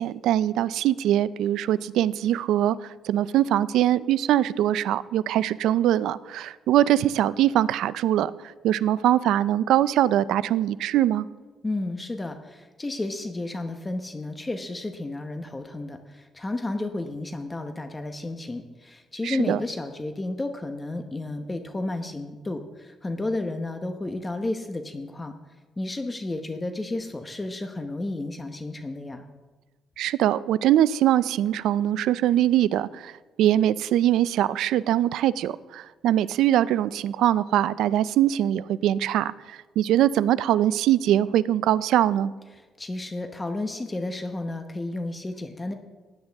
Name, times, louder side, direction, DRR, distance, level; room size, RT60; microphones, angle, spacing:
voice 1, 0.0-8.3 8.6-11.3 19.2-19.6 30.0-33.1 33.4-42.3, right 12 dB, 85° right, 17 dB, 0.4 m, -22 dB
voice 2, 11.6-25.3 25.8-29.3 42.5-45.7, left 2 dB, 20° left, 6 dB, 1.0 m, -32 dB
16.0 x 10.5 x 3.5 m, 1.3 s
cardioid pair, 90°, 0 cm